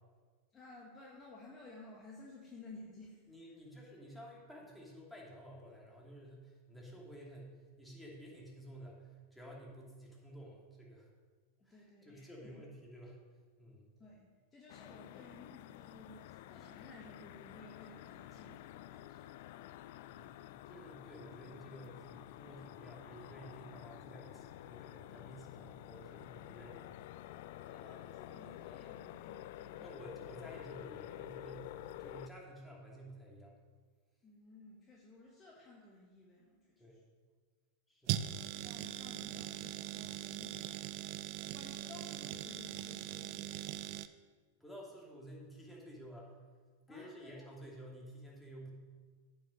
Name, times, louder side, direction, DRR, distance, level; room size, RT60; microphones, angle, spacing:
voice 1, 0.5-3.3 11.6-12.7 14.0-19.4 27.5-29.9 34.2-37.0 38.3-40.9 41.4-44.0 46.9-47.3, left 2 dB, 25° left, -3 dB, 1.6 m, -55 dB
voice 2, 3.3-11.1 11.6-13.2 13.6-13.9 18.1-18.3 20.1-20.4 20.7-27.0 29.8-33.6 36.8-37.0 37.9-38.3 44.6-46.3 46.9-48.7, equal, 5° left, -3 dB, 2.6 m, -52 dB
sound 1, 14.7-32.3, left 14 dB, 60° left, 0.3 m, -50 dB
sound 2, 38.1-44.1, right 13 dB, 50° right, 0.4 m, -41 dB
8.8 x 5.7 x 6.4 m, 1.5 s
hypercardioid pair, 95°, 0 cm